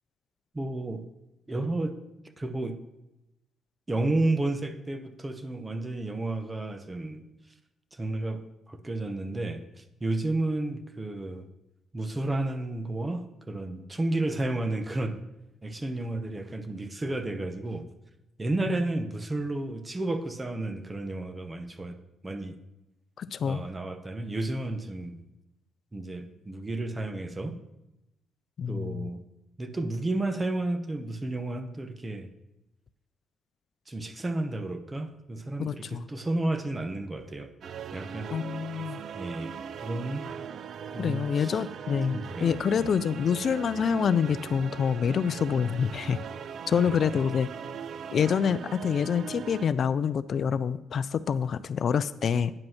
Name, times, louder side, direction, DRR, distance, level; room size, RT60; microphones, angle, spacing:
voice 1, 0.5-1.1 1.5-2.0 2.4-2.8 3.9-7.2 7.9-11.5 11.9-15.3 15.6-17.9 18.4-22.0 22.2-22.6 23.4-25.2 25.9-27.6 28.7-29.2 29.6-32.3 33.9-37.5 37.9-38.3 39.1-40.3 40.9-41.6 42.1-42.9 46.7-46.9, right 2 dB, 20° right, 10 dB, 0.9 m, -32 dB
voice 2, 23.2-23.6 28.6-29.1 35.6-36.1 38.3-39.0 41.0-46.2 46.7-47.5 48.1-52.5, left 7 dB, 55° left, 15 dB, 0.3 m, -27 dB
sound 1, 37.6-49.7, right 7 dB, 60° right, 0.4 m, -40 dB
9.5 x 5.3 x 5.8 m, 0.94 s
cardioid pair, 90°, 0 cm